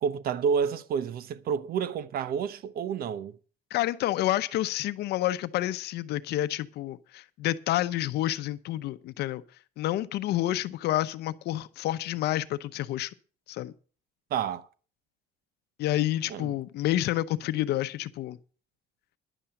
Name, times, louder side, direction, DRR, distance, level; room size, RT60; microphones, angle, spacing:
voice 1, 0.0-3.3 14.3-14.7 16.3-16.5, right 7 dB, 60° right, 0.9 m, -29 dB
voice 2, 3.7-9.4 9.8-13.1 13.5-13.7 15.8-18.4, left 14 dB, 75° left, 0.7 m, -29 dB
11.0 x 7.0 x 7.6 m
cardioid pair, 110°, 17 cm